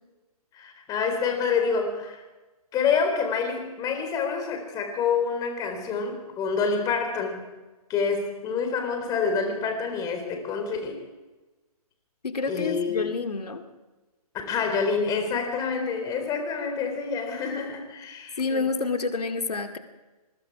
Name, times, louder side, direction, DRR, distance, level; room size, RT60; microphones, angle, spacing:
voice 1, 0.5-2.2 2.7-7.5 7.9-11.0 12.5-13.1 14.5-18.6, left 5 dB, 20° left, 5 dB, 4.0 m, -27 dB
voice 2, 12.2-13.6 18.0-19.8, left 4 dB, 80° left, 6 dB, 2.2 m, -29 dB
26.5 x 22.0 x 4.9 m, 1.2 s
figure-of-eight pair, 140°, 20 cm